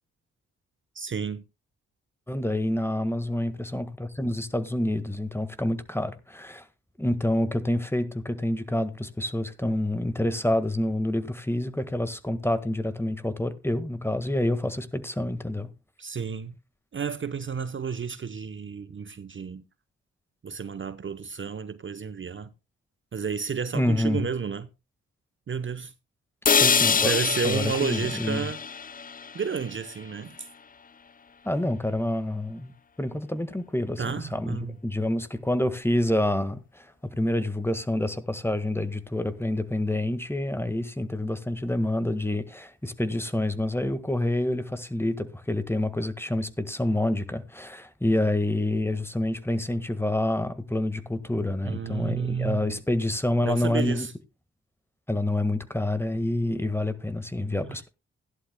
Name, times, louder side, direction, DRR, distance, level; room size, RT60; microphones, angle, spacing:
voice 1, 0.9-1.4 16.0-16.6 16.9-19.6 20.4-22.5 23.1-24.7 25.5-25.9 27.0-28.6 29.3-30.5 34.0-34.8 51.6-52.8 53.4-54.1 57.6-57.8, right 6 dB, 40° right, 0.8 m, -31 dB
voice 2, 2.3-6.6 7.0-15.7 23.7-24.3 26.5-27.1 27.4-28.5 31.4-54.1 55.1-57.9, left 1 dB, 5° left, 1.6 m, -27 dB
sound 1, 26.5-30.5, left 6 dB, 25° left, 0.6 m, -26 dB
16.5 x 11.0 x 2.2 m
hypercardioid pair, 40°, 31 cm